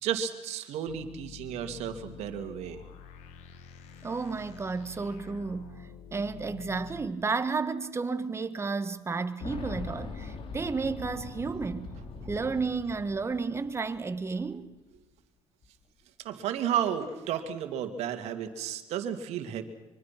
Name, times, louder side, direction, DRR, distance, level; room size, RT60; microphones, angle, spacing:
voice 1, 0.0-2.8 16.2-19.6, right 9 dB, 75° right, 2.5 m, -32 dB
sound 1, 0.9-7.1, left 8 dB, 85° left, 2.0 m, -48 dB
voice 2, 4.0-11.9 12.2-14.7, right 4 dB, 25° right, 1.6 m, -32 dB
Boom, 9.4-14.2 14.4-14.5 15.6-15.7, left 4 dB, 55° left, 3.0 m, -41 dB
25.0 x 23.5 x 6.0 m
cardioid pair, 105°, 11 cm